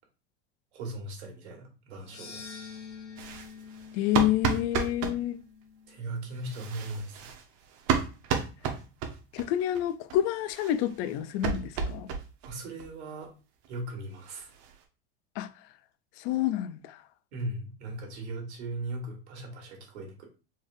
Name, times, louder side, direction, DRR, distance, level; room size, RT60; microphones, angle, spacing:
voice 1, 0.7-2.4 5.9-7.3 12.4-13.3 13.7-14.5 17.3-20.2, right 2 dB, 85° right, 1.6 m, -38 dB
sound 1, 2.0-6.3, left 5 dB, 85° left, 1.6 m, -47 dB
sound 2, 3.2-5.2 6.4-9.5 9.7-9.8 10.1-10.2 10.5-12.5 12.8-12.9 13.2-13.3 13.6-13.7 14.0-14.8, right 6 dB, 50° right, 0.9 m, -32 dB
voice 2, 3.9-5.4 9.3-12.1 15.4-15.5 16.2-17.0, left 12 dB, 45° left, 0.4 m, -28 dB
4.3 x 3.3 x 2.5 m
supercardioid pair, 130°, 32 cm